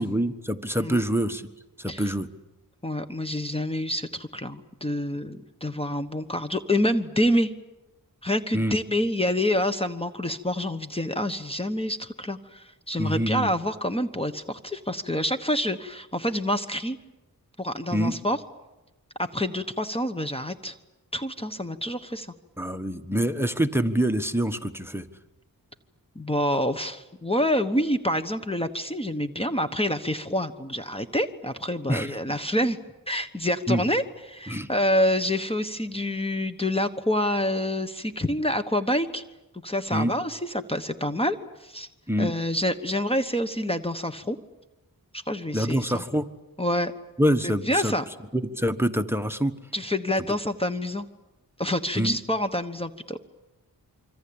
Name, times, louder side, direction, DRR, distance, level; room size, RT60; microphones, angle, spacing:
voice 1, 0.0-1.5 1.8-2.3 8.5-8.8 13.0-13.5 17.9-18.2 22.6-25.1 31.9-32.1 33.7-33.8 34.5-34.7 39.9-40.1 42.1-42.3 45.5-46.3 47.2-47.9 48.3-49.5 51.9-52.2, equal, 5° right, 10 dB, 1.3 m, -25 dB
voice 2, 2.8-7.5 8.2-17.0 17.6-18.4 19.2-20.7 21.1-22.3 26.1-32.8 33.1-39.2 39.6-41.9 42.2-44.4 45.1-46.0 46.6-46.9 47.4-48.0 49.7-51.1 51.6-53.2, left 1 dB, 15° left, 8 dB, 1.2 m, -27 dB
26.0 x 25.0 x 8.8 m, 1.0 s
wide cardioid pair, 75°, 35 cm